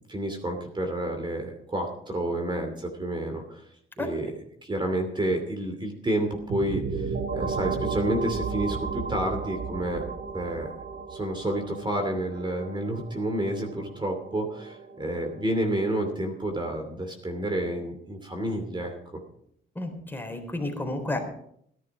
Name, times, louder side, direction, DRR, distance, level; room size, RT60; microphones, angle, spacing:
voice 1, 0.1-3.6 4.0-4.3 4.6-10.0 10.3-10.7 11.1-19.2, right 1 dB, 25° right, 4 dB, 2.7 m, -30 dB
sound 1, 6.5-16.1, right 5 dB, 50° right, 1.8 m, -34 dB
voice 2, 19.8-21.2, left 2 dB, 10° left, 3 dB, 3.8 m, -31 dB
17.0 x 11.0 x 4.9 m, 0.69 s
cardioid pair, 90°, 20 cm